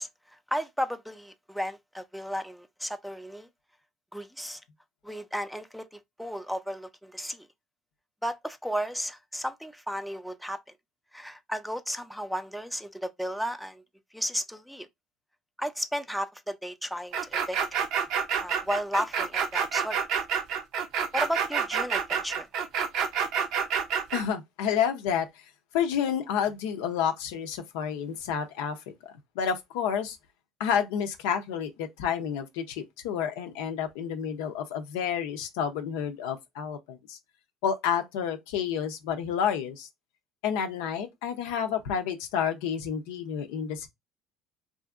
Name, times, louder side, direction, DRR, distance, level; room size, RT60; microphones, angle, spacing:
voice 1, 0.0-3.5 4.1-4.6 5.0-7.5 8.2-10.6 11.1-13.8 14.1-14.9 15.6-17.6 18.4-20.0 21.1-22.5, equal, ahead, 0.4 m, -34 dB
sound 1, 17.1-24.2, right 7 dB, 70° right, 0.5 m, -28 dB
voice 2, 24.1-25.3 25.7-28.8 29.0-30.2 30.6-37.2 37.6-39.9 40.4-43.9, left 8 dB, 90° left, 0.5 m, -30 dB
2.7 x 2.5 x 2.3 m
supercardioid pair, 95°, 0 cm